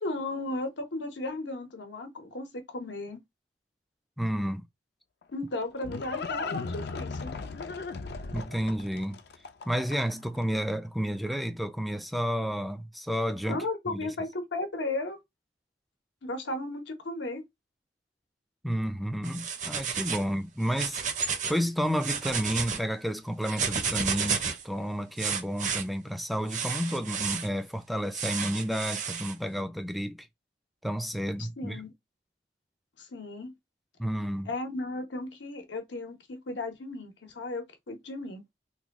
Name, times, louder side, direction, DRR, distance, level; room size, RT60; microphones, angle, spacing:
voice 1, 0.0-3.2 5.3-7.4 13.5-15.2 16.2-17.4 31.4-31.9 33.0-33.5 34.5-38.4, left 2 dB, 90° left, 0.9 m, -35 dB
voice 2, 4.2-4.6 8.3-9.2 9.7-14.1 18.6-30.3 30.8-31.8 34.0-34.5, equal, ahead, 0.3 m, -31 dB
Livestock farm animals working animals, 5.2-10.3, left 4 dB, 65° left, 0.4 m, -37 dB
sound 1, 19.2-20.3 20.6-21.6 21.9-22.8 23.4-24.6 25.2-25.8 26.5-27.5 28.1-29.3, right 6 dB, 45° right, 0.6 m, -32 dB
3.1 x 2.2 x 3.5 m
head